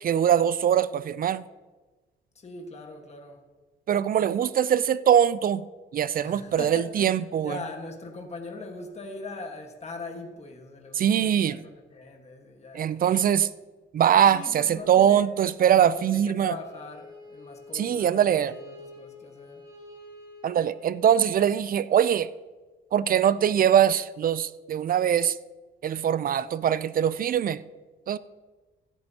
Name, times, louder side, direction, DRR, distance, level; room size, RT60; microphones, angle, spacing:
voice 1, 0.0-1.4 3.9-5.6 5.9-7.6 10.9-11.6 12.7-13.5 13.9-16.6 17.7-18.5 20.4-22.3 22.9-25.4 25.8-27.6 28.1-28.2, right 9 dB, 45° right, 0.5 m, -22 dB
voice 2, 2.3-3.4 6.2-13.0 14.3-15.2 15.7-19.6, left 3 dB, 35° left, 1.5 m, -41 dB
Bowed string instrument, 16.5-21.5, left 2 dB, 25° right, 4.0 m, -48 dB
15.5 x 10.5 x 2.9 m
cardioid pair, 90°, 20 cm